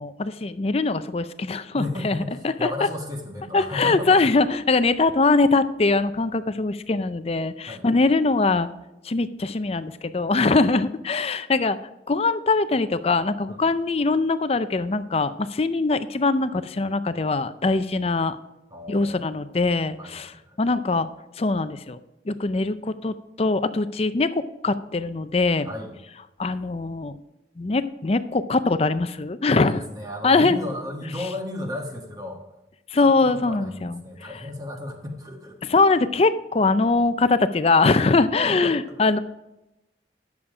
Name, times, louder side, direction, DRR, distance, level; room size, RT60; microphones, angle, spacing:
voice 1, 0.0-2.7 3.5-8.7 9.0-11.8 12.1-18.4 18.9-21.1 21.4-22.0 22.3-25.7 26.4-27.2 27.6-29.8 30.2-30.6 31.2-31.3 32.9-34.3 35.6-39.2, left 3 dB, 35° left, 12 dB, 0.5 m, -22 dB
voice 2, 1.7-4.3 7.7-7.8 13.5-13.6 18.7-19.2 20.0-20.4 25.6-25.9 29.5-32.4 33.0-35.6 38.5-38.8, left 1 dB, 20° right, 2 dB, 1.5 m, -34 dB
11.0 x 7.1 x 4.9 m, 0.95 s
head